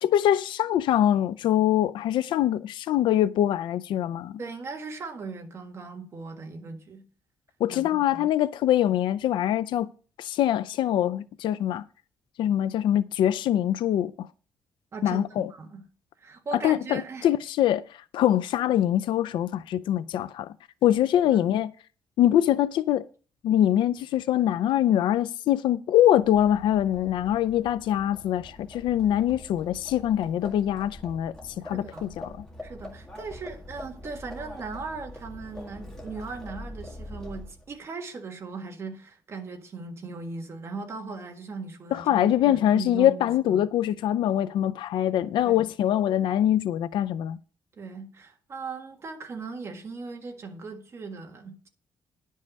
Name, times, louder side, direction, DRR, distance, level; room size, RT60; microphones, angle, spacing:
voice 1, 0.0-4.4 7.6-9.9 10.2-11.8 12.4-14.3 15.0-15.5 16.5-20.5 20.8-21.7 22.2-23.1 23.4-32.4 41.9-47.4, left 11 dB, 85° left, 0.4 m, -24 dB
voice 2, 4.4-7.0 7.7-8.3 14.9-15.8 16.2-17.3 21.2-21.4 31.7-32.1 32.6-43.6 45.4-45.6 47.8-51.7, right 4 dB, 35° right, 1.6 m, -38 dB
Livestock farm animals working animals, 26.1-37.7, left 1 dB, 5° left, 1.9 m, -44 dB
10.5 x 5.5 x 6.4 m
cardioid pair, 170°, 8 cm